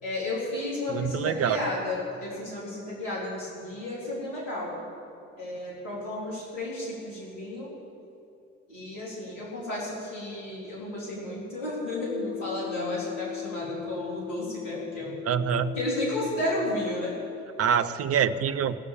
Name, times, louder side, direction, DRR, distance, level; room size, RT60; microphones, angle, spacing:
voice 1, 0.0-4.8 5.4-7.7 8.7-15.1 15.8-17.1, left 1 dB, 75° left, -6 dB, 3.8 m, -33 dB
voice 2, 0.9-1.6 15.3-15.8 17.6-18.8, right 8 dB, 40° right, 11 dB, 0.8 m, -25 dB
sound 1, 12.1-17.4, left 12 dB, 55° left, 0.5 m, -38 dB
18.0 x 6.5 x 8.8 m, 2.8 s
figure-of-eight pair, 50°, 38 cm